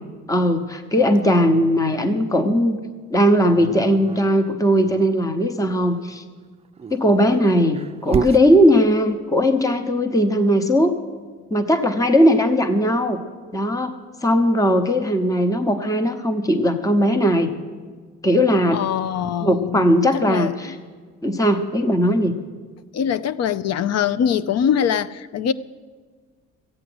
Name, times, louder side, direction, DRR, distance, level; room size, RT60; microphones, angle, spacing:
voice 1, 0.3-2.8 3.1-6.2 6.9-10.9 11.5-13.2 13.5-13.9 14.2-17.5 18.2-18.8 19.4-20.7 21.2-22.3, equal, 10° left, 0.9 m, -18 dB
Dog, 3.5-5.1 6.7-8.5, right 6 dB, 20° right, 0.5 m, -29 dB
voice 2, 18.7-20.0 20.3-20.8 22.9-25.5, left 8 dB, 60° left, 0.6 m, -23 dB
14.0 x 9.0 x 7.8 m
cardioid pair, 90°, 30 cm